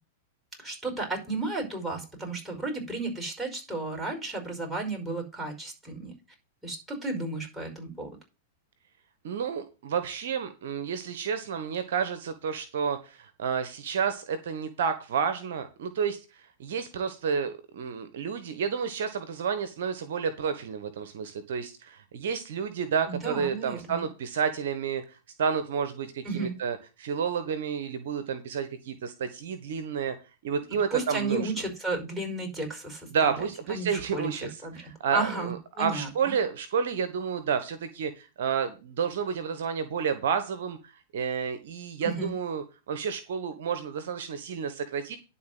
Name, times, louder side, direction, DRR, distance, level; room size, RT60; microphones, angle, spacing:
voice 1, 0.6-6.1 6.6-8.1 23.1-24.1 26.2-26.5 30.9-33.3 33.7-36.3 42.0-42.3, right 2 dB, 5° right, 0 dB, 5.2 m, -33 dB
voice 2, 9.2-25.0 25.4-30.1 30.4-31.5 33.1-45.2, right 6 dB, 65° right, 11 dB, 1.1 m, -30 dB
11.0 x 4.2 x 7.8 m, 0.30 s
figure-of-eight pair, 100°, 0 cm